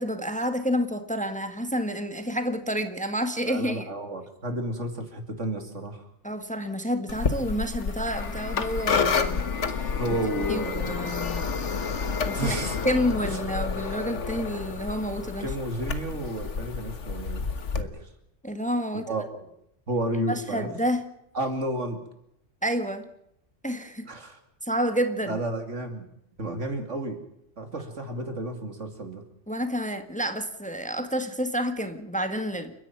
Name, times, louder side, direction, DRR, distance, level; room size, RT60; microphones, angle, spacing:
voice 1, 0.0-3.9 6.2-10.2 10.5-11.5 12.3-12.6 12.8-15.5 18.4-19.1 20.1-21.0 22.6-23.1 23.6-24.1 24.6-25.4 29.5-32.7, equal, 5° left, 8 dB, 1.6 m, -29 dB
voice 2, 3.5-6.0 9.9-10.9 12.3-12.8 13.2-13.4 15.4-17.5 17.8-18.1 18.9-19.5 19.9-20.8 21.3-22.0 24.1-24.4 25.3-26.1 26.4-27.2 27.6-29.2, right 1 dB, 80° right, 6 dB, 3.1 m, -31 dB
sound 1, 7.1-17.8, left 5 dB, 75° left, 1.6 m, -30 dB
29.5 x 10.5 x 9.1 m, 0.78 s
omnidirectional pair, 1.2 m